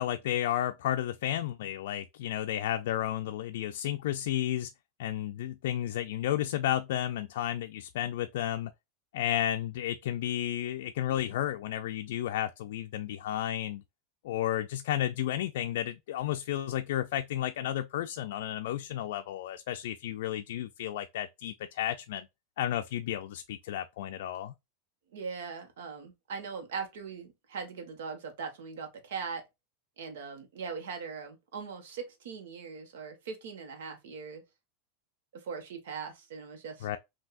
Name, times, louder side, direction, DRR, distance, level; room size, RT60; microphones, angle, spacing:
voice 1, 0.0-4.7 5.0-8.7 9.1-13.8 14.2-22.3 22.6-24.5 36.8-37.0, left 12 dB, 65° left, 0.4 m, -32 dB
voice 2, 25.1-29.4 30.0-34.4 35.3-36.9, right 5 dB, 75° right, 1.3 m, -40 dB
5.7 x 2.8 x 2.5 m
supercardioid pair, 175°, 0 cm